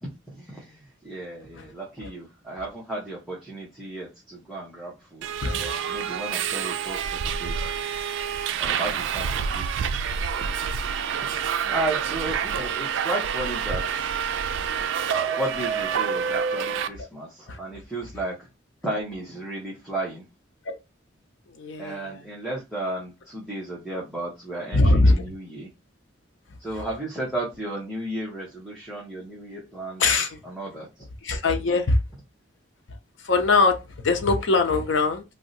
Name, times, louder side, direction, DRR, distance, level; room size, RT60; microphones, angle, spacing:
voice 1, 0.0-7.6 8.6-9.9 11.7-14.1 15.2-18.5 18.8-20.2 21.8-25.7 26.6-31.1, right 1 dB, ahead, 0.7 m, -34 dB
Subway metro underground, 5.2-16.9, right 7 dB, 70° right, 0.3 m, -27 dB
voice 2, 21.5-22.2 24.7-25.2 30.0-30.4 31.2-32.0 33.2-35.2, left 3 dB, 70° left, 0.6 m, -21 dB
2.6 x 2.1 x 3.8 m
head